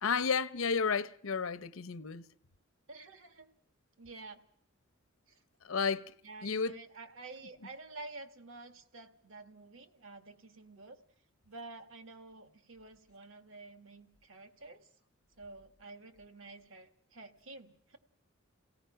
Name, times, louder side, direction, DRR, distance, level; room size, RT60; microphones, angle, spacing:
voice 1, 0.0-2.3 5.6-6.1 6.4-6.8, left 5 dB, 75° left, 0.8 m, -32 dB
voice 2, 2.9-3.5 4.0-4.4 5.3-5.4 6.2-11.0 11.5-14.9 15.4-18.0, right 3 dB, 70° right, 1.9 m, -50 dB
29.5 x 17.0 x 5.7 m
head